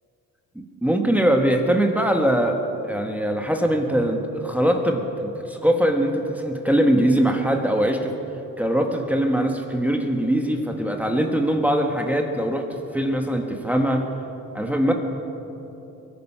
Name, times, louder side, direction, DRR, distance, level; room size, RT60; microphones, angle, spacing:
voice 1, 0.5-8.1 8.6-14.1 14.5-14.9, right 1 dB, 5° right, 3 dB, 1.3 m, -22 dB
23.0 x 9.4 x 5.6 m, 3.0 s
cardioid pair, 95°, 31 cm